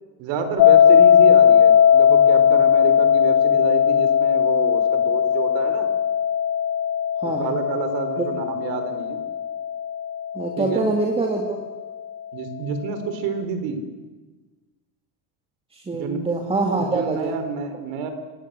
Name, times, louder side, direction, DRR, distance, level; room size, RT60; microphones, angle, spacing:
voice 1, 0.2-5.9 7.2-9.2 10.6-10.9 12.3-13.8 15.9-16.2 16.8-18.1, right 6 dB, 65° right, 9 dB, 4.3 m, -29 dB
sound 1, 0.6-11.5, left 8 dB, 55° left, 2.3 m, -18 dB
voice 2, 7.2-7.5 8.2-8.3 10.3-11.6 15.7-17.3, right 3 dB, 10° right, 1 dB, 2.1 m, -24 dB
27.5 x 18.5 x 8.1 m, 1.3 s
cardioid pair, 160°, 45 cm